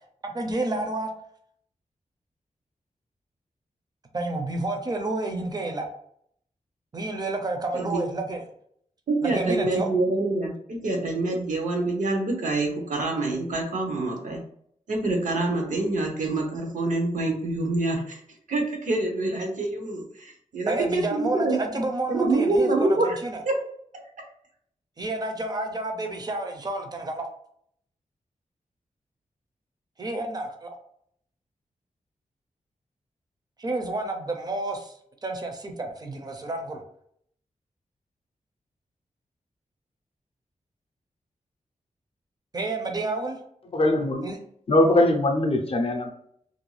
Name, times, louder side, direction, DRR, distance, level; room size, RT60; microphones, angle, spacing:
voice 1, 0.2-1.1 4.1-5.9 6.9-8.4 9.2-9.9 20.7-23.4 25.0-27.3 30.0-30.7 33.6-34.9 35.2-36.8 42.5-43.4 44.2-44.4, right 2 dB, 30° right, 4 dB, 0.5 m, -30 dB
voice 2, 9.1-14.4 14.9-18.2 18.5-21.6 22.1-23.2 23.4-23.5, right 2 dB, 75° right, 2 dB, 0.7 m, -26 dB
voice 3, 43.7-44.3 44.7-46.1, left 1 dB, 45° left, 3 dB, 0.5 m, -21 dB
2.5 x 2.2 x 3.1 m, 0.67 s
wide cardioid pair, 130°, 13 cm